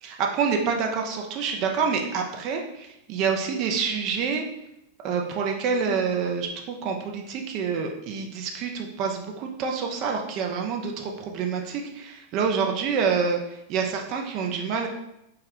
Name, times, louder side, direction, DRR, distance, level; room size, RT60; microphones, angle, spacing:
voice 1, 0.0-4.5 5.0-14.9, right 6 dB, 40° right, 2 dB, 0.4 m, -27 dB
2.3 x 2.1 x 3.4 m, 0.82 s
figure-of-eight pair, 90°, 0 cm